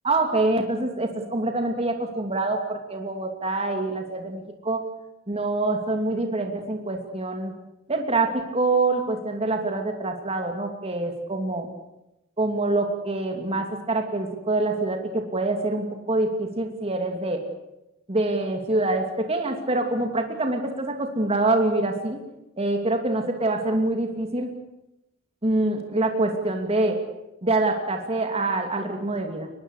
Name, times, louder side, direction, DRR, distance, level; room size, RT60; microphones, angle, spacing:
voice 1, 0.0-4.8 5.3-7.5 7.9-11.7 12.4-17.4 18.1-22.2 22.6-24.5 25.4-27.0 27.4-29.5, right 2 dB, 30° right, 4 dB, 2.8 m, -25 dB
23.5 x 21.5 x 8.3 m, 0.92 s
head